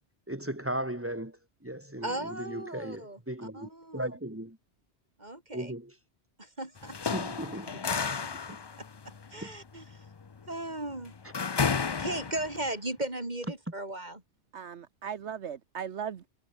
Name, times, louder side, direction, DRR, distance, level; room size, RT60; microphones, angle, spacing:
voice 1, 0.3-4.6 5.5-6.0 7.1-7.8 9.4-9.5, right 1 dB, 10° right, 1.9 m, -37 dB
voice 2, 2.0-3.2 3.5-4.1 5.2-5.7 6.4-7.0 8.2-8.3 9.3-10.1 10.5-11.1 12.0-14.2, right 1 dB, 40° right, 3.8 m, -36 dB
sound 1, 6.8-12.7, left 5 dB, 35° left, 0.4 m, -33 dB
voice 3, 14.5-16.3, right 8 dB, 80° right, 1.3 m, -38 dB
omnidirectional pair, 1.1 m